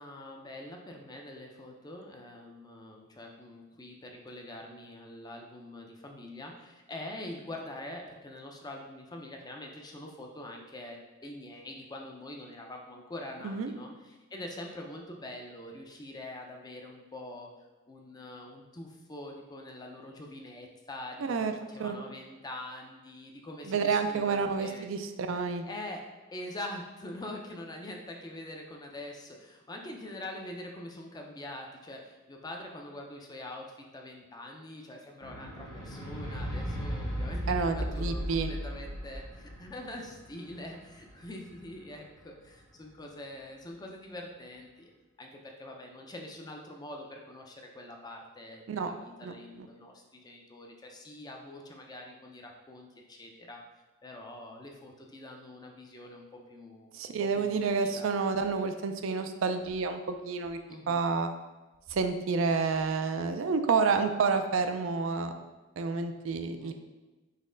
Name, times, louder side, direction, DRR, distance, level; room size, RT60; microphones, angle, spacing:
voice 1, 0.0-17.5 17.9-24.9 25.7-26.0 26.3-44.9 45.2-53.6 54.0-56.9 57.2-58.1 60.7-61.0 66.6-66.7, left 1 dB, 20° left, 1 dB, 0.5 m, -44 dB
voice 2, 21.2-21.5 21.8-22.0 23.7-25.6 37.5-38.5 48.7-48.9 49.2-49.7 56.9-60.6 60.9-61.3 61.9-65.3 65.8-66.7, right 5 dB, 75° right, 7 dB, 0.4 m, -29 dB
sound 1, 35.2-41.7 42.5-42.6, equal, 70° left, 0.9 m, -36 dB
4.1 x 3.1 x 3.8 m, 1.1 s
head